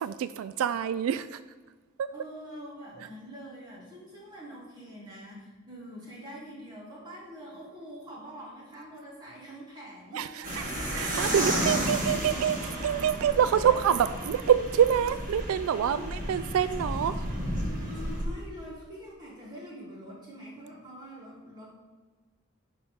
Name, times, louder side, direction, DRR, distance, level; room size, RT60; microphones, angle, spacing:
voice 1, 0.0-1.4 2.0-2.1 10.1-10.6 10.9-17.3, right 8 dB, 85° right, 13 dB, 0.3 m, -26 dB
voice 2, 2.1-10.3 13.6-14.1 15.8-16.3 17.6-21.7, equal, 20° right, -6 dB, 2.8 m, -45 dB
sound 1, 10.4-18.2, right 1 dB, 40° right, 1.7 m, -32 dB
10.5 x 3.8 x 5.2 m, 1.4 s
head